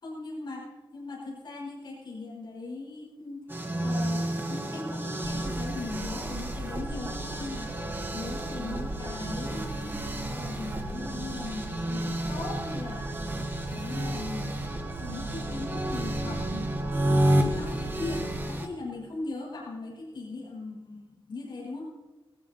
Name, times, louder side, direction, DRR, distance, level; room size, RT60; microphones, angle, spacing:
voice 1, 0.0-0.6 0.9-3.4 3.8-10.0 10.3-13.1 13.7-14.6 15.0-21.9, left 3 dB, 55° left, -4 dB, 5.8 m, -39 dB
sound 1, 3.5-18.7, right 1 dB, 25° right, 1.3 m, -31 dB
Stadt - Winter Morgen Straße, 5.2-18.5, right 3 dB, 90° right, 1.5 m, -40 dB
21.5 x 14.0 x 3.0 m, 1.2 s
wide cardioid pair, 180°, 9 cm